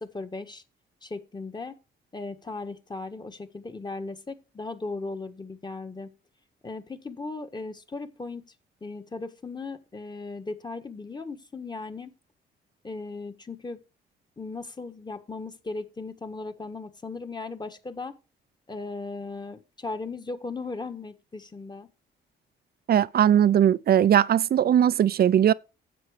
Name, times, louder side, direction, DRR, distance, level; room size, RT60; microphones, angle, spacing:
voice 1, 0.0-0.6 1.0-1.8 2.1-6.1 6.6-8.5 8.8-12.1 12.8-13.8 14.4-18.2 18.7-21.9, left 3 dB, 20° left, 1.6 m, -37 dB
voice 2, 22.9-25.5, right 10 dB, 50° right, 0.6 m, -19 dB
9.9 x 7.7 x 5.1 m
cardioid pair, 90°, 20 cm